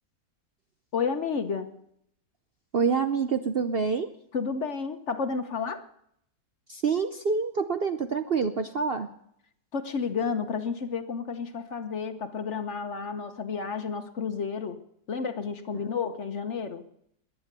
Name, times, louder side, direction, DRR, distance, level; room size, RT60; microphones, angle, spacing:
voice 1, 0.9-1.7 4.3-5.9 9.7-14.8 15.1-16.8, left 5 dB, 50° left, 8 dB, 1.2 m, -31 dB
voice 2, 2.7-4.1 6.7-9.1 15.7-15.9, right 5 dB, 50° right, 8 dB, 0.7 m, -27 dB
21.5 x 9.4 x 6.7 m, 0.74 s
omnidirectional pair, 1.7 m